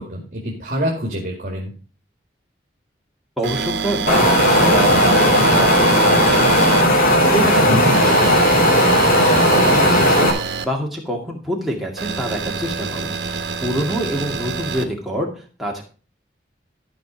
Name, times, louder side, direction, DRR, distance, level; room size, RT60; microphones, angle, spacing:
voice 1, 0.0-1.7 7.7-8.0, equal, 45° right, -1 dB, 2.2 m, -25 dB
voice 2, 3.4-8.6 8.9-15.8, equal, ahead, -2 dB, 2.2 m, -27 dB
sound 1, 3.4-6.8 7.9-10.6 12.0-14.8, right 5 dB, 70° right, 1.2 m, -26 dB
Wind, 4.1-10.3, equal, 50° left, 2.9 m, -15 dB
13.5 x 5.3 x 5.2 m, 0.38 s
head